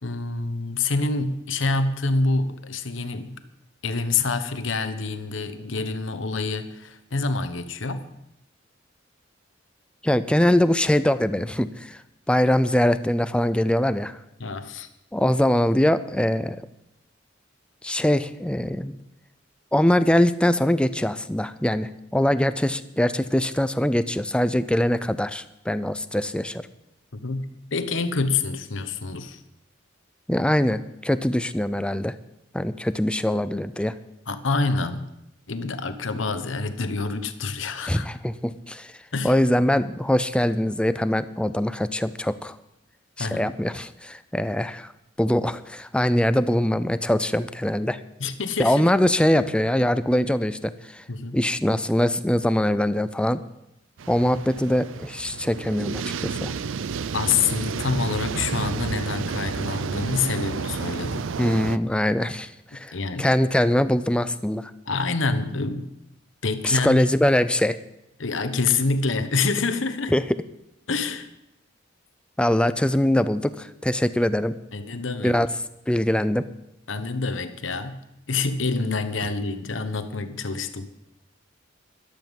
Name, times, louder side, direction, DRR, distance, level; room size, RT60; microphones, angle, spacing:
voice 1, 0.0-3.4 3.8-8.1 14.4-14.9 27.1-29.4 34.3-35.1 35.5-38.1 39.1-39.4 43.2-43.5 48.2-48.9 51.1-51.4 57.1-61.3 62.9-63.3 64.9-65.9 66.4-67.1 68.2-70.1 70.9-71.3 74.7-75.4 76.9-80.9, left 4 dB, 75° left, 9 dB, 1.1 m, -27 dB
voice 2, 10.0-12.0 12.3-14.2 15.1-16.7 17.8-19.0 19.7-26.7 30.3-32.1 32.5-33.9 37.9-38.9 39.2-42.6 43.2-44.9 45.2-48.0 48.6-51.0 51.3-53.4 54.1-56.5 61.4-64.7 66.6-67.8 70.1-70.2 72.4-74.5 75.2-75.5 75.9-76.4, left 1 dB, 5° left, 13 dB, 0.5 m, -22 dB
sound 1, 54.0-61.8, right 5 dB, 80° right, 0.5 m, -31 dB
13.5 x 11.5 x 5.4 m, 0.84 s
head